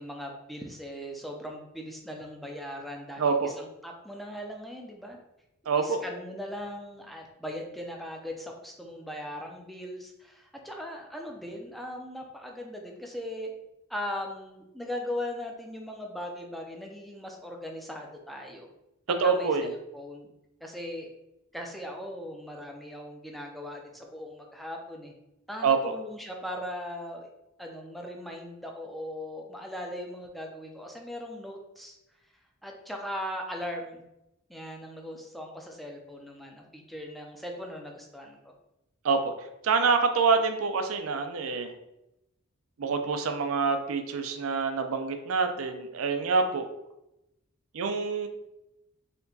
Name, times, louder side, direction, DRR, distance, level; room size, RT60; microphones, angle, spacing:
voice 1, 0.0-5.2 5.8-13.5 13.9-18.7 19.1-20.3 20.6-21.1 21.5-25.1 25.5-27.3 27.6-32.0 32.6-34.0 34.5-38.5, left 1 dB, ahead, 1 dB, 0.4 m, -39 dB
voice 2, 3.2-3.5 5.7-6.0 19.2-19.7 25.6-25.9 39.0-39.3 39.6-41.7 42.8-46.7 47.7-48.3, right 5 dB, 80° right, 7 dB, 0.5 m, -26 dB
4.2 x 2.9 x 2.7 m, 0.89 s
head